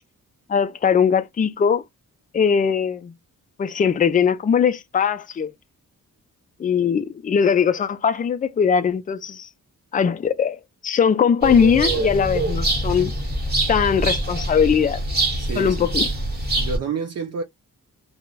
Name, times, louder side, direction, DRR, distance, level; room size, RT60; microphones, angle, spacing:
voice 1, 0.5-1.8 2.3-3.1 3.6-5.5 6.6-9.5 9.9-13.1 13.7-15.0 15.6-16.0, left 7 dB, 25° left, 0.3 m, -20 dB
sound 1, 11.4-16.8, right 2 dB, 30° right, 1.2 m, -24 dB
voice 2, 15.4-15.8 16.6-17.4, right 6 dB, 50° right, 0.5 m, -28 dB
2.2 x 2.1 x 3.7 m
wide cardioid pair, 105°, 34 cm